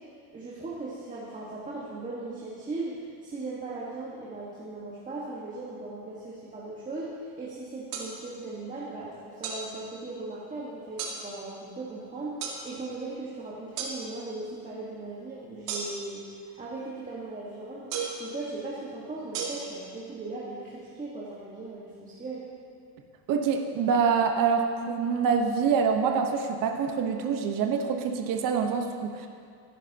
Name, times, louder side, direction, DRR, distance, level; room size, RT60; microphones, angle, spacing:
voice 1, 0.3-7.1 7.4-16.2 16.5-17.9 18.2-22.4, right 3 dB, 15° right, -7 dB, 1.6 m, -38 dB
sound 1, 7.9-8.1 9.4-9.6 11.0-11.2 12.4-12.6 13.8-13.9 15.7-16.1 17.9-18.2 19.3-19.4, right 6 dB, 85° right, 2.5 m, -33 dB
voice 2, 23.3-29.3, right 6 dB, 45° right, 4 dB, 1.2 m, -26 dB
16.5 x 10.0 x 2.9 m, 2.3 s
supercardioid pair, 135°, 48 cm